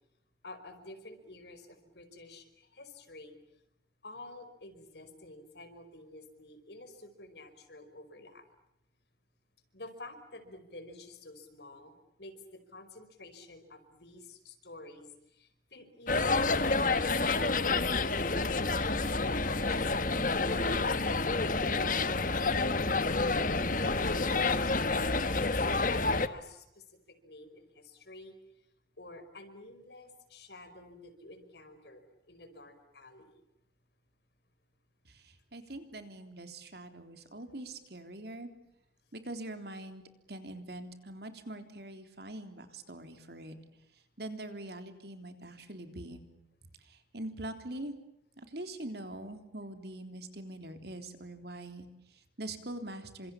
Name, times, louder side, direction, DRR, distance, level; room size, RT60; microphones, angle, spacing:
voice 1, 0.4-3.4 4.0-8.4 9.7-16.9 17.4-18.6 19.0-22.3 23.4-25.7 26.0-28.4 29.0-33.4, left 2 dB, 60° left, 9 dB, 5.0 m, -49 dB
sound 1, 16.1-26.3, left 3 dB, 45° left, 1.4 m, -29 dB
voice 2, 35.1-38.5 39.1-43.6 44.2-46.2 46.8-47.9 48.4-53.3, right 1 dB, 60° right, 7 dB, 3.6 m, -43 dB
29.5 x 26.5 x 7.3 m, 0.83 s
head